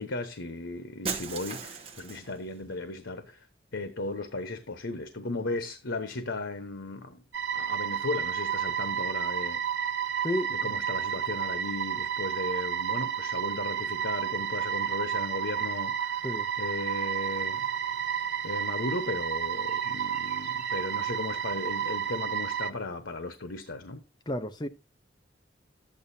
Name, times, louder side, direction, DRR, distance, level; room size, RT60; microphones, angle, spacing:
voice 1, 0.0-3.5 3.7-7.2 7.5-9.6 10.1-16.2 16.6-17.7 18.4-24.0, left 2 dB, 90° left, 1.0 m, -36 dB
Shatter, 1.0-2.4, right 5 dB, 30° right, 1.0 m, -36 dB
sound 1, 7.3-22.7, right 8 dB, 75° right, 0.7 m, -31 dB
voice 2, 10.2-10.8 16.2-16.5 24.3-24.7, left 1 dB, 20° left, 0.6 m, -32 dB
sound 2, 17.2-22.2, equal, 50° left, 6.6 m, -57 dB
11.5 x 8.7 x 2.7 m
head